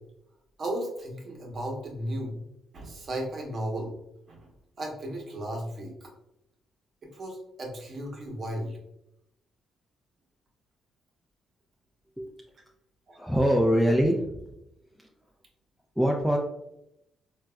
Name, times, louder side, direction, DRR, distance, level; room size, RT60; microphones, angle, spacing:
voice 1, 0.6-2.4 2.7-3.9 4.3-4.5 4.8-6.1 7.1-8.8 13.1-13.2, right 1 dB, 50° right, 0 dB, 0.9 m, -35 dB
voice 2, 13.2-14.4 16.0-16.4, equal, ahead, -1 dB, 0.4 m, -23 dB
3.8 x 2.3 x 2.2 m, 0.83 s
cardioid pair, 90°, 0 cm